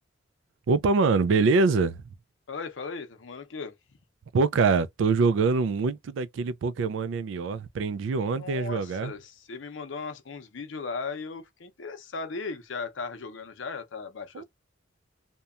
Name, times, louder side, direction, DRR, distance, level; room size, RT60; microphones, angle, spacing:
voice 1, 0.7-2.0 4.3-9.1 14.3-14.4, right 4 dB, 80° right, 0.3 m, -24 dB
voice 2, 2.5-3.8 8.3-14.4, left 4 dB, 80° left, 0.6 m, -37 dB
2.8 x 2.2 x 2.3 m
head